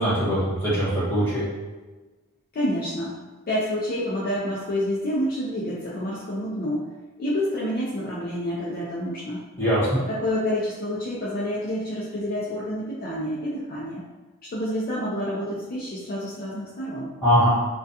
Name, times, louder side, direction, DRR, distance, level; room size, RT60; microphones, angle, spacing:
voice 1, 0.0-1.5 9.6-10.0 17.2-17.5, equal, 10° left, -11 dB, 1.1 m, -21 dB
voice 2, 2.5-3.2 3.5-6.9 7.2-9.4 10.1-14.0 14.4-17.1, equal, 40° left, -6 dB, 0.4 m, -28 dB
2.3 x 2.2 x 2.7 m, 1.2 s
head